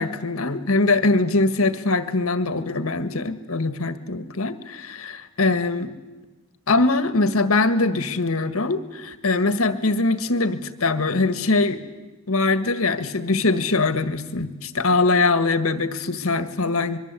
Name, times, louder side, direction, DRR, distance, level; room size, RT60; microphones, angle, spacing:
voice 1, 0.0-5.9 6.7-11.8 12.3-17.0, left 3 dB, 90° left, 11 dB, 1.7 m, -22 dB
25.0 x 23.0 x 8.4 m, 1.2 s
head